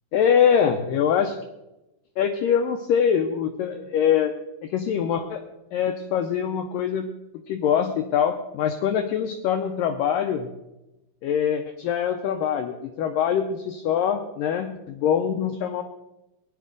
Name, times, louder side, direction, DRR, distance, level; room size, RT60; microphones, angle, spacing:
voice 1, 0.1-1.4 2.2-4.3 4.7-5.4 5.7-7.1 7.5-10.5 11.2-15.8, left 8 dB, 90° left, 7 dB, 1.9 m, -23 dB
17.5 x 10.5 x 3.8 m, 0.95 s
omnidirectional pair, 4.8 m